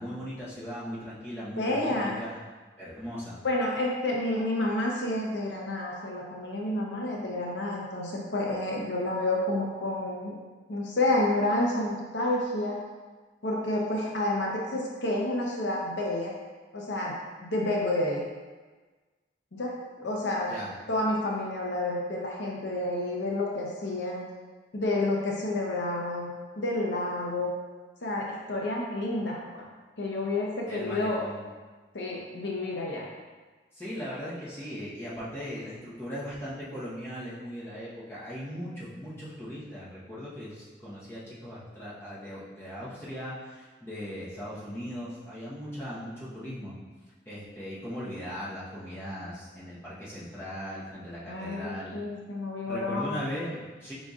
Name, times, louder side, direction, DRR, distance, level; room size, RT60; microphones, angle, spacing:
voice 1, 0.0-2.4 2.8-3.4 20.5-20.7 30.7-31.4 33.7-46.7 47.2-52.0 52.7-53.9, equal, 15° left, -10 dB, 1.0 m, -38 dB
voice 2, 1.6-2.2 3.4-10.4 10.7-12.8 13.4-16.3 16.7-17.1 17.4-18.2 19.5-20.5 20.9-24.3 24.7-26.3 26.6-27.5 28.0-29.6 30.0-31.2 31.9-33.1 51.3-53.2, left 1 dB, 85° left, -2 dB, 0.7 m, -29 dB
4.8 x 4.0 x 2.4 m, 1.3 s
head